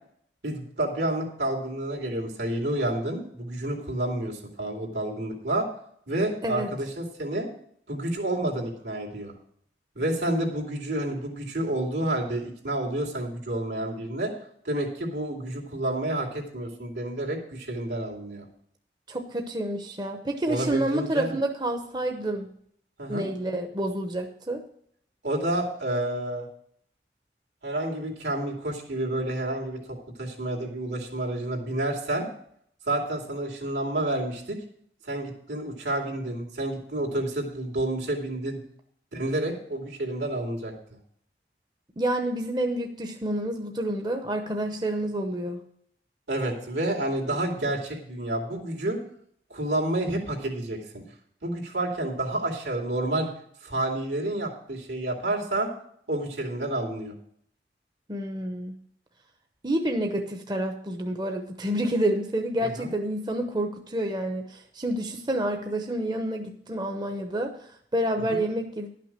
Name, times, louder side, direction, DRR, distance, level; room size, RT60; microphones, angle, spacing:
voice 1, 0.4-5.7 6.1-7.5 7.9-9.3 9.9-14.3 14.6-18.5 20.5-21.3 23.0-23.3 25.2-26.5 27.6-32.3 32.9-34.6 35.0-38.6 39.1-41.0 46.3-49.0 49.5-50.8 51.4-53.3 53.6-55.7 56.1-57.1 62.6-62.9 68.3-68.4, right 1 dB, 80° right, 0 dB, 2.6 m, -29 dB
voice 2, 19.1-22.5 23.1-24.6 42.0-45.6 58.1-58.7 59.6-67.5 67.9-68.9, right 1 dB, 25° right, 4 dB, 0.8 m, -28 dB
11.5 x 6.0 x 7.4 m, 0.67 s
head